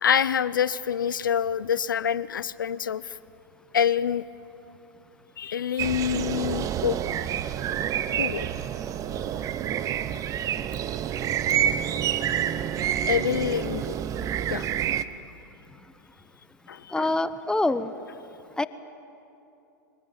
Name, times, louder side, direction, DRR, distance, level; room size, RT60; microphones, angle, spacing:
voice 1, 0.0-3.1 3.7-4.2 5.4-7.0 8.2-8.5 13.1-14.0 14.5-14.7 16.7-17.1, left 8 dB, 80° left, 17 dB, 0.7 m, -26 dB
sound 1, 5.8-15.0, right 10 dB, 30° right, 0.9 m, -28 dB
voice 2, 16.9-17.9 18.6-18.7, left 2 dB, 5° left, 14 dB, 0.8 m, -25 dB
24.5 x 19.5 x 9.0 m, 2.8 s
hypercardioid pair, 105°, 11 cm